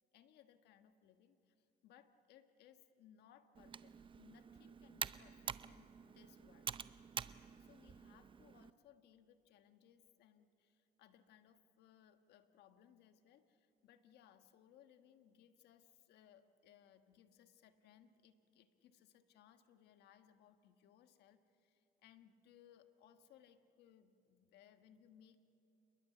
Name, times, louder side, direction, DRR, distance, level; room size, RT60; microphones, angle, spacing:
voice 1, 0.1-6.7 7.6-25.4, left 9 dB, 80° left, 9 dB, 1.4 m, -66 dB
Computer keyboard, 3.5-8.7, right 6 dB, 30° right, 0.6 m, -48 dB
28.0 x 21.5 x 8.4 m, 2.9 s
cardioid pair, 110°, 17 cm